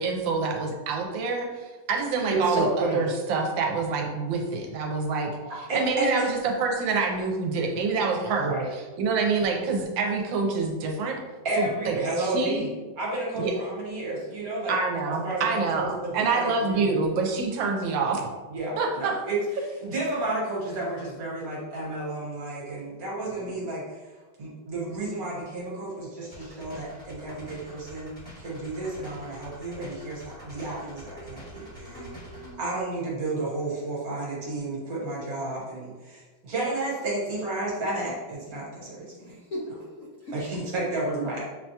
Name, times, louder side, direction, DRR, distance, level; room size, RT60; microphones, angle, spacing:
voice 1, 0.0-5.3 5.6-8.5 9.0-11.2 11.6-12.7 13.4-13.5 14.7-18.3 18.8-19.1, right 4 dB, 80° right, 1 dB, 1.3 m, -27 dB
voice 2, 2.3-3.0 5.4-6.3 8.4-8.7 11.4-12.7 13.0-14.7 15.0-17.0 18.5-24.1 24.4-28.1 28.4-32.1 32.5-39.4 40.3-41.4, right 2 dB, 55° right, -5 dB, 1.5 m, -31 dB
voice 3, 23.2-23.6 31.7-32.6 39.2-40.3 41.2-41.3, left 1 dB, 60° left, -6 dB, 0.8 m, -40 dB
sound 1, 26.3-32.5, equal, 5° left, 0.9 m, -45 dB
6.1 x 2.2 x 2.8 m, 1.3 s
omnidirectional pair, 2.1 m